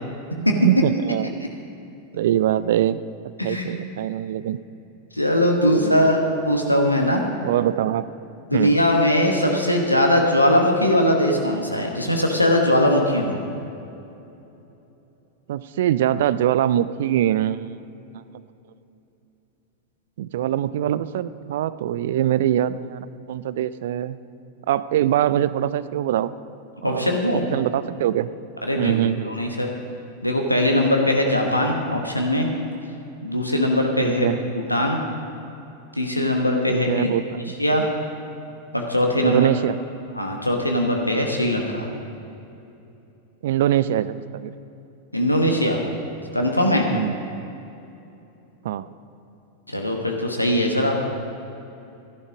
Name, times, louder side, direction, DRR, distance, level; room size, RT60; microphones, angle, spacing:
voice 1, 0.4-1.3 2.1-3.0 3.4-4.6 5.7-6.1 7.4-8.1 8.5-8.8 15.5-17.8 18.1-18.2 20.2-24.2 24.7-26.3 26.8-28.3 28.8-29.4 34.0-34.4 36.7-37.5 39.2-39.8 43.4-44.5 46.9-47.1 48.6-48.9, right 11 dB, 55° right, 15 dB, 0.4 m, -23 dB
voice 2, 3.4-3.7 5.1-7.2 8.5-13.4 26.8-27.4 28.6-29.7 30.2-32.5 33.2-35.0 35.9-37.1 37.6-37.9 38.7-39.5 40.2-41.9 45.1-45.8 46.3-46.9 49.7-51.1, left 1 dB, 85° left, 1 dB, 1.2 m, -20 dB
13.5 x 11.0 x 5.1 m, 2.9 s
figure-of-eight pair, 90°, 0 cm